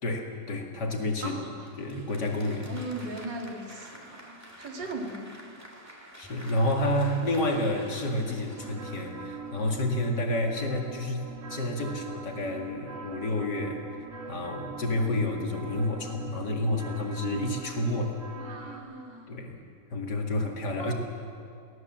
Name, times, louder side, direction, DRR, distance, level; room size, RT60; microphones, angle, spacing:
voice 1, 0.0-1.4 1.8-2.8 6.2-13.8 14.3-18.2 19.3-19.6 19.9-20.9, left 1 dB, 70° left, 1 dB, 2.9 m, -29 dB
voice 2, 1.2-1.7 2.6-5.5 18.4-19.5 20.8-20.9, right 2 dB, 90° right, 0 dB, 3.3 m, -39 dB
Applause, 1.6-9.7, right 1 dB, 10° right, 2.3 m, -49 dB
sound 1, 8.6-18.8, right 5 dB, 50° right, 2.1 m, -42 dB
22.0 x 18.0 x 7.5 m, 2.4 s
omnidirectional pair, 1.9 m